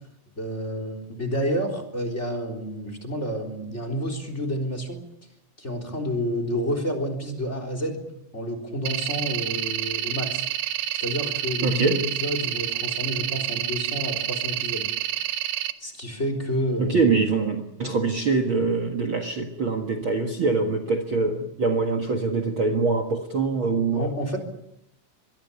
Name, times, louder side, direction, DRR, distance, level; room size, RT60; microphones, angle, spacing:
voice 1, 0.4-5.0 5.6-8.0 8.3-10.4 11.0-14.9 15.8-17.2 23.9-24.4, equal, 20° left, 7 dB, 3.8 m, -29 dB
sound 1, 8.9-15.7, right 12 dB, 85° right, 2.7 m, -28 dB
voice 2, 11.6-12.0 16.8-24.1, right 4 dB, 45° right, 7 dB, 2.2 m, -24 dB
25.5 x 21.5 x 7.0 m, 0.82 s
omnidirectional pair, 3.7 m